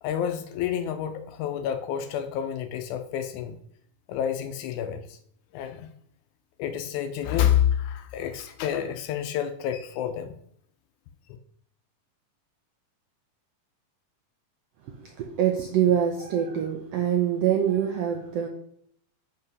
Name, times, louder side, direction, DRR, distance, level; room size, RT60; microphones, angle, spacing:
voice 1, 0.0-3.6 4.1-5.2 5.5-5.9 6.6-10.3, left 10 dB, 80° left, 1.8 m, -28 dB
voice 2, 14.8-18.5, right 9 dB, 80° right, 1.4 m, -25 dB
5.4 x 5.3 x 5.3 m
omnidirectional pair, 3.7 m